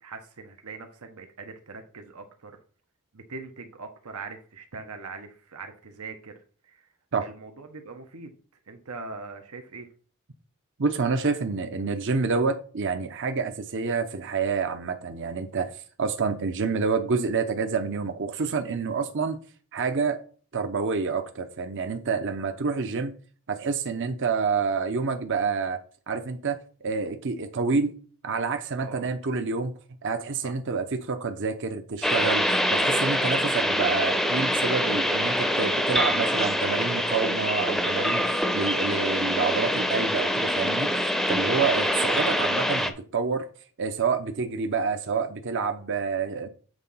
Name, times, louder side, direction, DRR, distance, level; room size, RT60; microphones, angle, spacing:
voice 1, 0.0-2.6 3.1-6.3 6.6-6.9 7.2-8.3 8.7-9.9 28.8-29.1 30.4-30.5, right 4 dB, 85° right, 6 dB, 1.1 m, -41 dB
voice 2, 10.8-19.4 19.7-20.2 20.5-23.1 23.5-25.8 26.1-27.9 28.2-29.7 30.0-40.9 41.3-43.5 43.8-46.5, right 5 dB, 55° right, 7 dB, 0.7 m, -28 dB
sound 1, 32.0-42.9, equal, ahead, 0.6 m, -25 dB
8.0 x 3.8 x 5.6 m, 0.41 s
head